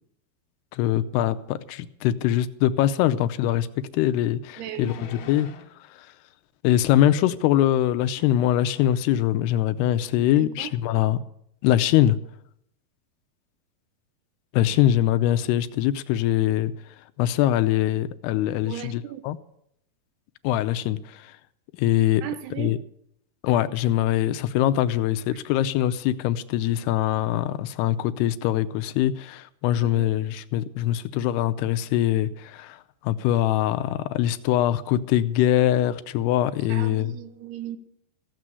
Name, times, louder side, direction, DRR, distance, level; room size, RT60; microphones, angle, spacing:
voice 1, 0.7-3.7 3.9-5.5 6.6-11.2 11.6-12.2 14.5-16.7 17.2-19.4 20.4-21.3 21.8-22.2 22.6-22.8 23.4-37.1, left 12 dB, 90° left, 2.8 m, -23 dB
sound 1, 3.8-3.9 4.8-5.8 6.9-7.3 8.3-8.5 8.7-9.1 9.6-9.7, left 8 dB, 65° left, 2.5 m, -46 dB
voice 2, 4.6-5.3 7.2-7.3 10.2-10.7 14.7-14.8 18.7-19.2 22.2-22.8 29.8-30.1 36.7-37.8, right 11 dB, 85° right, 3.1 m, -37 dB
15.5 x 7.7 x 9.6 m
omnidirectional pair, 4.6 m